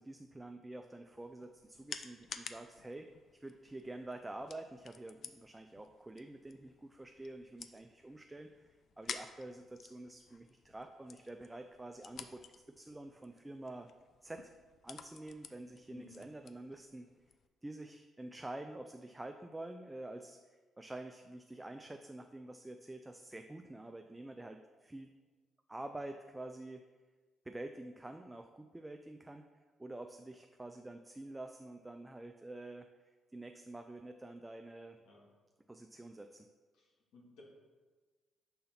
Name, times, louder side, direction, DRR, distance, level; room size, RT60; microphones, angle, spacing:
voice 1, 0.0-13.9 14.2-14.5 14.8-17.1 17.6-25.1 25.7-26.8 27.5-29.5 29.8-32.9 33.3-35.0 35.7-36.5, right 2 dB, 15° right, 6 dB, 0.3 m, -48 dB
sound 1, 1.1-17.5, left 6 dB, 55° left, 0.4 m, -52 dB
voice 2, 15.9-16.2 35.0-35.2 36.7-37.4, left 3 dB, 90° left, -3 dB, 1.7 m, -58 dB
5.6 x 3.8 x 5.7 m, 1.4 s
cardioid pair, 90°, 0 cm